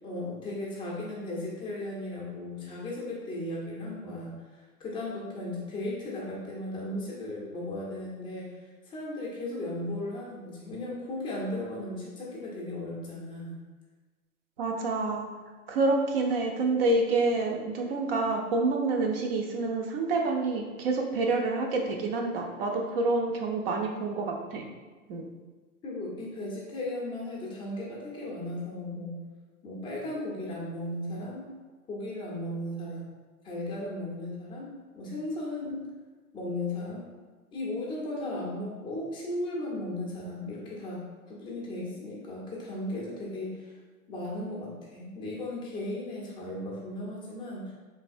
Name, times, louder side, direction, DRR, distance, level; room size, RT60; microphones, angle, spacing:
voice 1, 0.0-8.5 8.9-13.6 25.8-29.2 29.6-31.5 31.9-33.1 33.4-35.9 36.3-37.1 37.5-41.0 41.3-43.7 44.1-47.7, left 1 dB, 10° left, -4 dB, 0.6 m, -36 dB
voice 2, 14.6-15.3 15.7-24.6 25.1-25.2, right 3 dB, 40° right, 2 dB, 0.6 m, -28 dB
4.1 x 3.3 x 2.6 m, 1.3 s
hypercardioid pair, 125°, 45 cm